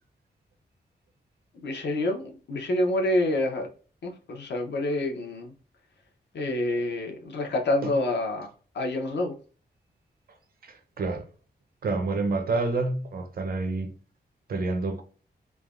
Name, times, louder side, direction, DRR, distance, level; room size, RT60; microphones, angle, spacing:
voice 1, 1.6-3.7 4.0-5.5 6.3-8.5 8.7-9.3, left 1 dB, 75° left, 0.7 m, -27 dB
voice 2, 10.6-11.2 11.8-13.9 14.5-15.0, right 3 dB, 55° right, 0.6 m, -28 dB
3.2 x 2.1 x 2.4 m
wide cardioid pair, 180°, 18 cm